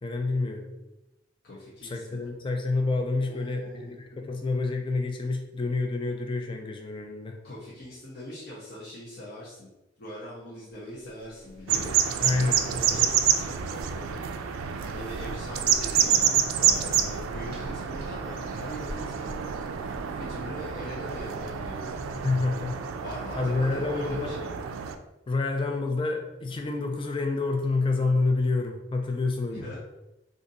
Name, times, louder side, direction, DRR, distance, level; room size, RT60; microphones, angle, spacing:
voice 1, 0.0-0.7 1.8-7.4 12.2-13.1 22.2-22.9 23.3-24.3 25.3-29.7, left 3 dB, 25° left, 3 dB, 0.3 m, -28 dB
voice 2, 1.4-2.2 3.2-4.0 7.4-9.7 10.0-13.1 13.4-14.2 14.8-19.3 20.2-22.3 23.0-24.5 29.5-29.8, left 1 dB, 50° left, -8 dB, 0.7 m, -42 dB
sound 1, 10.8-22.8, equal, 50° right, 0.8 m, -47 dB
sound 2, 11.7-24.9, right 8 dB, 85° right, 0.3 m, -28 dB
2.6 x 2.5 x 3.9 m, 0.99 s
head